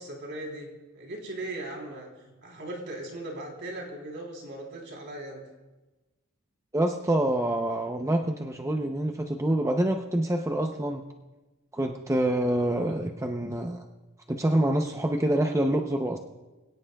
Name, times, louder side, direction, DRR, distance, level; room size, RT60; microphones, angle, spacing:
voice 1, 0.0-5.4, right 1 dB, 60° right, 0 dB, 3.6 m, -38 dB
voice 2, 6.7-11.0 11.7-13.8 14.3-16.2, right 1 dB, 15° right, 3 dB, 0.7 m, -26 dB
25.5 x 17.0 x 2.3 m, 1.1 s
head